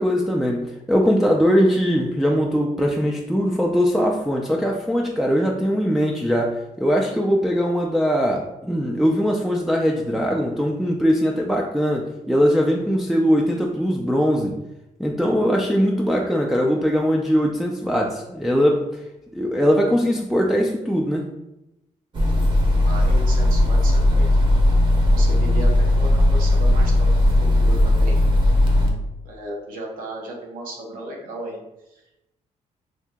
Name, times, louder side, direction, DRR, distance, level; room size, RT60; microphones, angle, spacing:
voice 1, 0.0-14.5 15.0-18.9 19.3-21.3, equal, ahead, -1 dB, 0.3 m, -21 dB
sound 1, 22.1-28.9, left 1 dB, 35° right, 0.7 m, -17 dB
voice 2, 22.8-24.3 25.1-28.1 28.7-29.0 29.2-31.6, right 1 dB, 90° right, 0 dB, 0.8 m, -35 dB
2.8 x 2.6 x 3.5 m, 0.91 s
cardioid pair, 105°, 14 cm